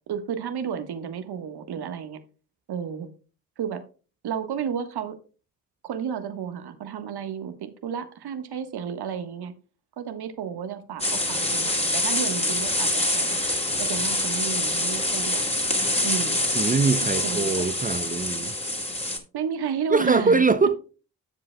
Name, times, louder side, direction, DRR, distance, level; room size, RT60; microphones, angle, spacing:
voice 1, 0.1-2.2 2.7-3.1 3.6-3.8 4.2-5.2 5.8-9.5 10.0-13.4 13.8-15.5 16.0-16.4 17.2-17.6 19.3-20.4, right 8 dB, 60° right, 1.5 m, -32 dB
sound 1, 11.0-19.2, left 1 dB, 15° left, 2.7 m, -25 dB
voice 2, 16.5-18.5 19.9-20.8, right 4 dB, 20° right, 0.6 m, -22 dB
13.0 x 7.5 x 2.3 m
hypercardioid pair, 50°, 44 cm